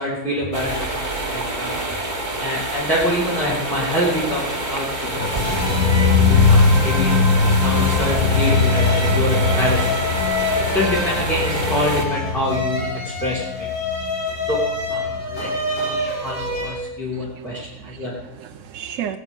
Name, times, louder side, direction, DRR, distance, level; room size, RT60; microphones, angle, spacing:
voice 1, 0.0-1.8 2.4-4.9 5.1-7.2 7.4-9.8 10.2-10.3 10.7-13.7 14.5-14.6 14.9-18.1, left 1 dB, ahead, -5 dB, 2.8 m, -26 dB
sound 1, 0.5-12.0, right 1 dB, 25° right, 2.2 m, -27 dB
sound 2, 5.1-16.1 16.4-16.5, left 4 dB, 75° left, 2.0 m, -21 dB
sound 3, 5.2-16.8, left 2 dB, 50° left, 3.7 m, -27 dB
voice 2, 17.1-19.2, right 9 dB, 65° right, 6 dB, 0.9 m, -34 dB
19.0 x 8.2 x 7.2 m, 0.97 s
omnidirectional pair, 1.7 m